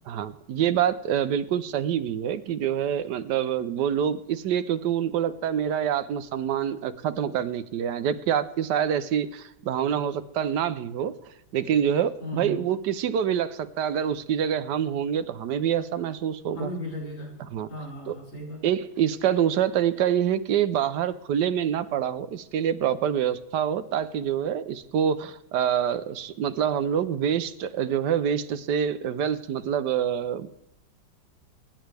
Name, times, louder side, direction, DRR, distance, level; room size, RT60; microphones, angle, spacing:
voice 1, 0.1-11.1 11.5-16.7 17.5-17.7 18.1-18.2 18.6-30.6, right 9 dB, 70° right, 12 dB, 1.2 m, -26 dB
voice 2, 12.2-12.6 16.5-17.3 17.7-18.6, equal, 70° left, -3 dB, 5.9 m, -35 dB
24.5 x 10.5 x 3.4 m, 0.88 s
omnidirectional pair, 2.1 m